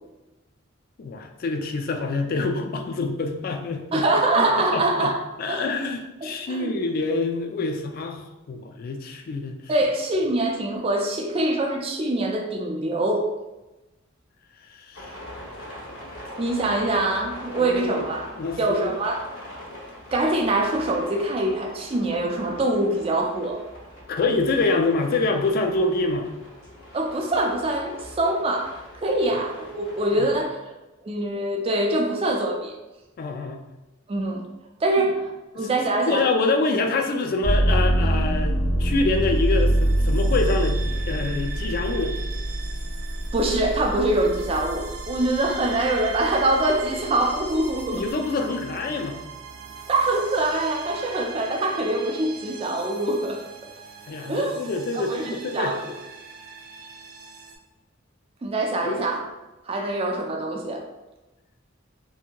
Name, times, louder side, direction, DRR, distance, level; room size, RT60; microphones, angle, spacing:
voice 1, 1.0-4.0 4.4-5.1 5.4-9.5 14.7-15.2 17.6-18.9 24.1-26.3 30.1-30.3 33.2-33.6 35.0-35.1 36.1-40.8 41.1-42.1 47.9-49.2 54.1-55.7 58.8-59.0, left 3 dB, 45° left, 4 dB, 0.3 m, -26 dB
voice 2, 3.9-5.2 5.5-5.7 6.2-6.7 9.7-13.3 16.4-18.3 18.6-19.3 20.1-23.6 26.9-30.6 31.0-32.7 34.1-34.4 34.8-35.3 35.6-36.3 43.3-48.0 49.9-53.4 54.3-55.9 58.4-59.2 59.7-60.8, right 2 dB, 30° right, 1 dB, 0.4 m, -24 dB
sound 1, 14.9-30.4, equal, 60° left, 0.7 m, -42 dB
sound 2, 37.4-45.2 45.7-46.5, right 1 dB, 80° left, 1.4 m, -24 dB
sound 3, 39.0-57.6, right 5 dB, 80° right, 0.5 m, -40 dB
2.7 x 2.6 x 2.2 m, 1.0 s
head